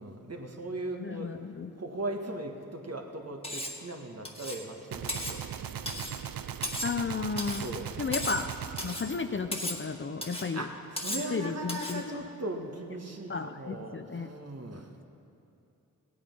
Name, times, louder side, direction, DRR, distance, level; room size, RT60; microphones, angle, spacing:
voice 1, 0.0-1.3 1.8-5.4 5.8-6.1 7.6-7.9 10.5-14.9, right 1 dB, 40° right, 3 dB, 1.6 m, -38 dB
voice 2, 1.0-1.7 6.8-7.7 8.0-8.5 8.8-10.7 11.3-12.2 13.3-14.3, left 5 dB, 35° left, 8 dB, 0.6 m, -33 dB
Cutlery silverware, 3.4-3.8 4.3-4.7 5.1-5.4 5.9-6.2 6.6-7.0 7.4-7.7 8.1-8.5 8.8-9.1 9.5-9.8 10.2-10.5 11.0-11.3 11.7-12.0, left 1 dB, 15° left, 1.8 m, -36 dB
Gunshot gunfire, 4.9-10.1, right 9 dB, 65° right, 0.6 m, -39 dB
16.5 x 8.5 x 5.4 m, 2.7 s
cardioid pair, 50°, 37 cm